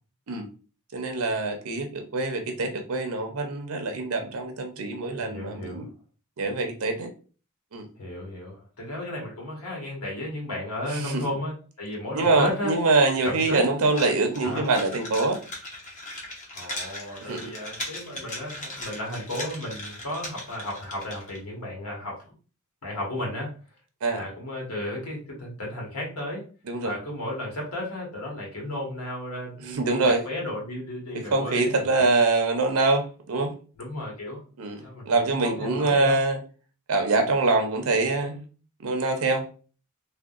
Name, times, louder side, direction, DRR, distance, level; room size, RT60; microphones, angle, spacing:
voice 1, 0.9-5.9 6.4-7.1 7.7-7.9 10.9-11.2 12.1-15.4 17.3-17.5 24.0-24.2 26.7-26.9 29.6-30.2 31.3-33.5 34.6-36.4 36.9-38.4 38.8-39.5, right 3 dB, 80° right, 5 dB, 0.6 m, -24 dB
voice 2, 5.2-5.9 8.0-12.7 13.2-13.6 14.4-14.7 16.5-22.3 22.8-23.5 24.1-26.5 26.8-32.1 33.8-34.4 34.8-36.2, left 1 dB, 80° left, -2 dB, 1.4 m, -34 dB
sound 1, 13.9-21.4, left 1 dB, 35° left, 0.9 m, -38 dB
3.5 x 2.2 x 2.4 m, 0.37 s
head